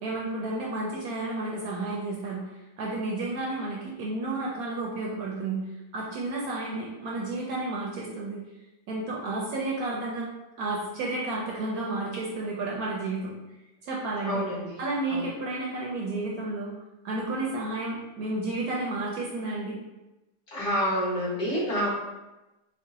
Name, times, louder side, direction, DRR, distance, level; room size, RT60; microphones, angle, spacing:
voice 1, 0.0-2.5 2.8-5.6 5.9-8.4 8.9-10.3 10.6-13.3 13.8-14.4 14.8-16.7 17.0-19.8, right 2 dB, 70° right, -3 dB, 0.9 m, -31 dB
voice 2, 14.2-14.8 15.1-15.3 20.5-22.0, equal, 65° left, -9 dB, 2.0 m, -28 dB
4.5 x 2.1 x 2.7 m, 1.0 s
omnidirectional pair, 1.8 m